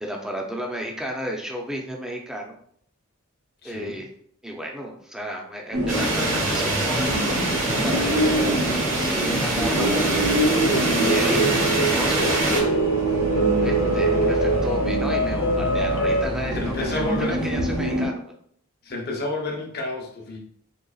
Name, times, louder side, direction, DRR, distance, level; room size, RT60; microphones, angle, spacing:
voice 1, 0.0-2.6 3.6-4.1 4.4-7.0 7.6-10.3 11.0-11.5 11.9-12.8 13.6-18.2, equal, 5° right, 0 dB, 0.5 m, -32 dB
voice 2, 3.6-4.0 11.3-11.5 16.6-17.4 18.8-20.4, left 2 dB, 50° left, 1 dB, 0.9 m, -30 dB
sound 1, 5.7-18.1, right 1 dB, 85° right, 1.0 m, -26 dB
sound 2, 5.9-12.6, right 1 dB, 65° right, 1.4 m, -24 dB
sound 3, 9.6-16.3, right 2 dB, 85° left, 0.6 m, -24 dB
3.9 x 3.5 x 2.4 m, 0.64 s
head